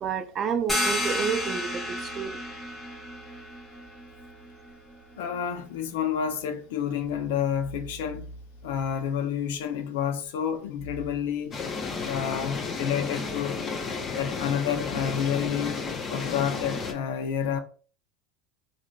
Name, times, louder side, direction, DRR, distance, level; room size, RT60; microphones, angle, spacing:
voice 1, 0.0-2.4, right 6 dB, 35° right, 0.4 m, -30 dB
sound 1, 0.7-6.1, left 1 dB, 10° left, 0.9 m, -33 dB
voice 2, 5.2-8.3 8.6-11.6 12.0-13.6 14.2-15.8 16.1-17.6, left 8 dB, 85° left, 0.5 m, -29 dB
sound 2, 11.5-16.9, left 4 dB, 30° left, 0.6 m, -32 dB
3.6 x 2.5 x 2.2 m
supercardioid pair, 125°, 0 cm